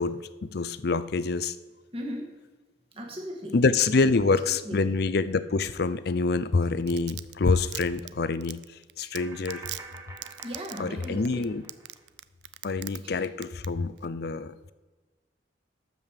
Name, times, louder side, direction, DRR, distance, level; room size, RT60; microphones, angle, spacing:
voice 1, 0.0-1.6 3.5-8.6 9.0-9.6 10.8-11.6 12.6-14.7, left 4 dB, 60° left, 14 dB, 0.5 m, -26 dB
voice 2, 1.9-2.4 2.9-3.6 3.9-4.9 10.4-11.5 13.0-13.2, equal, 30° right, 1 dB, 1.9 m, -38 dB
Domestic sounds home sounds, 6.6-13.0 13.2-13.7 14.0-14.1, right 15 dB, 70° right, 0.4 m, -39 dB
sound 1, 7.1-7.2 9.2-12.0, right 3 dB, 15° right, 1.5 m, -47 dB
12.5 x 5.3 x 7.4 m, 1.3 s
head